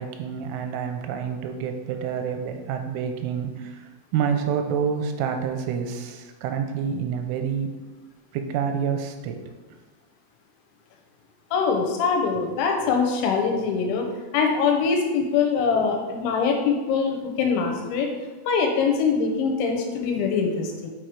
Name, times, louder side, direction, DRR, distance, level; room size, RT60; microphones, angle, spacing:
voice 1, 0.0-7.7 8.3-9.4 12.3-12.4 20.1-20.3, right 7 dB, 90° right, 5 dB, 3.2 m, -28 dB
voice 2, 11.5-14.1 14.3-18.1 18.5-20.9, left 5 dB, 80° left, 2 dB, 3.1 m, -23 dB
6.5 x 6.2 x 4.8 m, 1.2 s
omnidirectional pair, 5.6 m